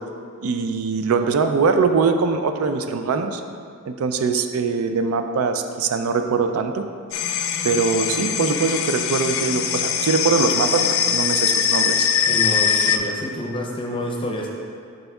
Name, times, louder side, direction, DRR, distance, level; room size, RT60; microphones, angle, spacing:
voice 1, 0.4-3.4 3.9-6.9 7.6-12.1, right 5 dB, 80° right, 7 dB, 0.4 m, -22 dB
sound 1, 7.1-13.0, left 8 dB, 70° left, 0.3 m, -22 dB
voice 2, 12.3-14.5, left 1 dB, 25° left, -1 dB, 0.6 m, -28 dB
7.8 x 5.3 x 2.3 m, 2.4 s
head